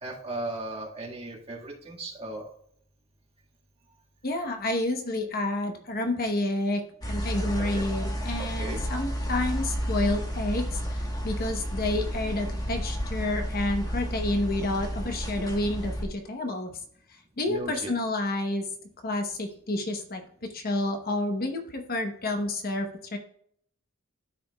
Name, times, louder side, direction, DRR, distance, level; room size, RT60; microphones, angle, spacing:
voice 1, 0.0-2.5 7.4-7.8 8.4-8.8 17.4-17.9, right 2 dB, 25° right, -2 dB, 1.7 m, -37 dB
voice 2, 4.2-16.7 17.1-18.7 19.0-23.2, left 2 dB, 45° left, 4 dB, 0.9 m, -30 dB
sound 1, 7.0-16.0, equal, 20° left, 1.2 m, -31 dB
12.5 x 5.1 x 2.3 m, 0.64 s
head